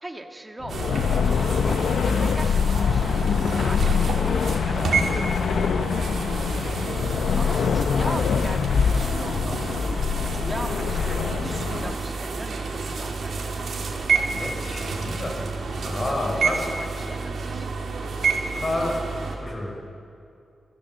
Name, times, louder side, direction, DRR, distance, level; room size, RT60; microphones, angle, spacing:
voice 1, 0.0-0.8 1.3-1.6 1.9-5.0 7.1-9.6 10.3-13.5 16.1-17.7, right 1 dB, 15° right, 3 dB, 1.7 m, -39 dB
sound 1, 0.6-11.9, left 6 dB, 75° left, 0.7 m, -24 dB
sound 2, 0.7-19.4, right 4 dB, 65° right, 3.2 m, -29 dB
voice 2, 6.5-7.0 14.3-15.4 15.8-16.6 18.5-19.0 19.4-19.8, left 1 dB, 25° left, 0 dB, 6.3 m, -30 dB
27.5 x 16.5 x 8.3 m, 2.5 s
wide cardioid pair, 155°, 0 cm